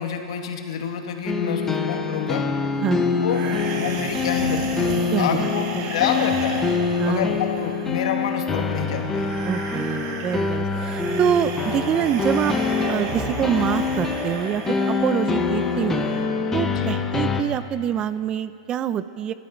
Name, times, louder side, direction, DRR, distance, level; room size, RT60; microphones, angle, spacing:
voice 1, 0.0-2.5 3.2-3.5 3.7-6.7 7.0-9.3 16.7-16.9, left 7 dB, 70° left, 4 dB, 2.1 m, -28 dB
sound 1, 1.3-17.4, left 5 dB, 10° left, 1.1 m, -25 dB
sound 2, 3.2-16.2, right 5 dB, 45° right, 2.0 m, -34 dB
voice 2, 5.1-5.9 7.0-7.4 9.4-12.6 12.9-16.1 16.5-19.3, right 9 dB, 25° right, 14 dB, 0.5 m, -25 dB
25.5 x 13.0 x 4.4 m, 2.3 s
hypercardioid pair, 140°, 3 cm